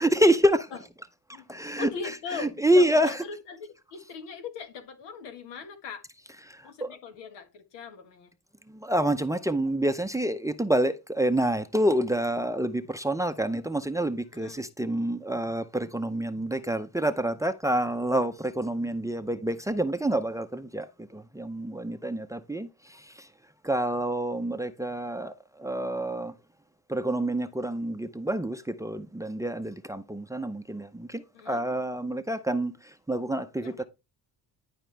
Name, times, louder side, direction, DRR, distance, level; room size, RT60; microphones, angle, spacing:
voice 1, 0.0-0.7 1.5-3.2 6.5-7.0 8.7-23.3 23.6-25.3 25.6-26.3 26.9-33.8, right 1 dB, 10° right, 0.6 m, -27 dB
voice 2, 1.8-3.6 3.9-6.0 6.6-8.3 14.3-14.7 31.3-31.6 33.6-33.8, left 5 dB, 80° left, 1.7 m, -39 dB
11.0 x 5.0 x 3.3 m
cardioid pair, 85°, 42 cm